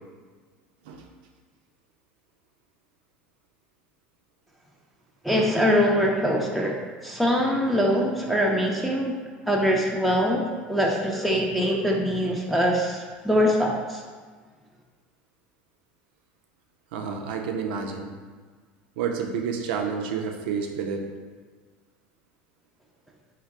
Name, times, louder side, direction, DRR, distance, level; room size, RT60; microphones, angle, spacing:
voice 1, 5.2-6.7 7.0-9.1 9.5-10.4 10.7-14.0, equal, ahead, -2 dB, 0.5 m, -23 dB
voice 2, 16.9-18.1 19.0-21.0, right 6 dB, 75° right, 3 dB, 0.5 m, -29 dB
3.6 x 2.2 x 3.5 m, 1.5 s
hypercardioid pair, 80°, 5 cm